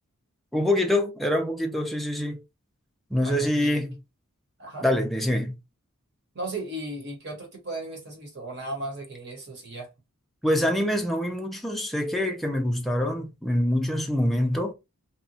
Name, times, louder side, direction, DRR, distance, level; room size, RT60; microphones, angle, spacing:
voice 1, 0.5-2.4 3.1-4.0 4.8-5.6 10.4-14.7, left 1 dB, ahead, 0.4 m, -25 dB
voice 2, 3.2-3.8 4.6-4.9 6.3-9.9, right 1 dB, 50° right, 1.1 m, -36 dB
2.8 x 2.2 x 2.6 m
head